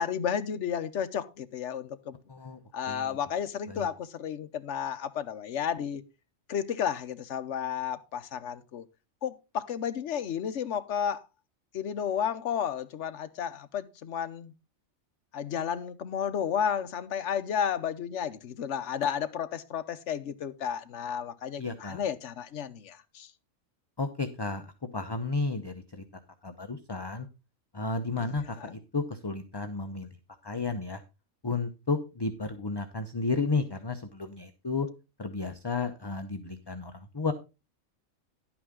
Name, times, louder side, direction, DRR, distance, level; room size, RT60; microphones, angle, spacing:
voice 1, 0.0-2.2 2.7-6.0 6.5-8.8 9.2-11.2 11.7-14.5 15.3-23.3 28.6-28.7, left 8 dB, 60° left, 1.2 m, -32 dB
voice 2, 2.9-3.2 3.7-3.9 21.6-22.0 24.0-24.6 24.9-26.0 26.4-27.3 27.7-30.1 30.4-31.0 31.4-34.9 35.2-37.3, left 3 dB, 25° left, 0.6 m, -32 dB
11.0 x 8.7 x 3.7 m
omnidirectional pair, 1.4 m